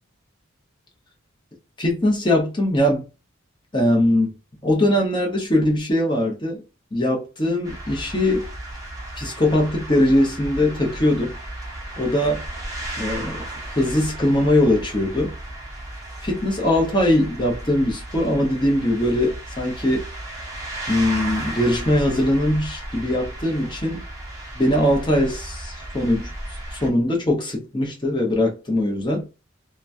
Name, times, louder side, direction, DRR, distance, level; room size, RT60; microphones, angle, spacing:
voice 1, 1.8-3.0 3.7-4.3 4.6-6.6 6.9-8.5 9.2-11.3 12.0-12.4 13.0-13.4 13.7-15.3 16.2-20.1 20.9-24.0 24.5-26.3 26.7-29.2, left 1 dB, 20° left, 0.8 m, -21 dB
sound 1, 7.6-26.9, right 1 dB, 15° right, 0.7 m, -34 dB
3.0 x 2.2 x 2.5 m
head